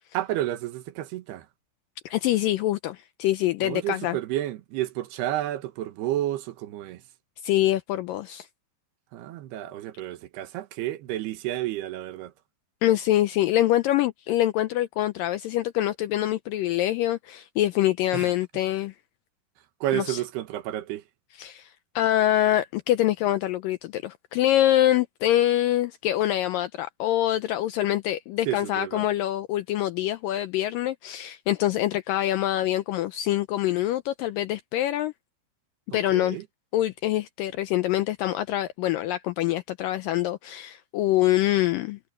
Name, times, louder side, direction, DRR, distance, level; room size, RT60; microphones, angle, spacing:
voice 1, 0.1-1.5 3.6-7.0 9.1-12.3 18.1-18.3 19.8-21.0 28.5-29.1 35.9-36.5, right 14 dB, 80° right, 3.3 m, -31 dB
voice 2, 2.1-4.2 7.4-8.5 12.8-18.9 19.9-20.2 21.4-35.1 35.9-36.4 36.7-42.0, left 14 dB, 80° left, 2.0 m, -25 dB
omnidirectional pair, 4.6 m